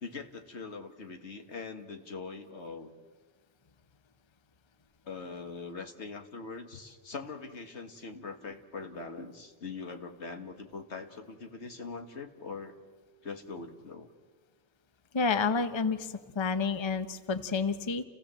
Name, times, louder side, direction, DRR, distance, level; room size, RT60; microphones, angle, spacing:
voice 1, 0.0-2.9 5.1-12.7 13.2-14.1, left 4 dB, 75° left, 5 dB, 1.9 m, -42 dB
voice 2, 15.1-18.0, left 4 dB, 25° left, 10 dB, 0.9 m, -29 dB
29.5 x 16.0 x 7.5 m, 1.4 s
omnidirectional pair, 1.1 m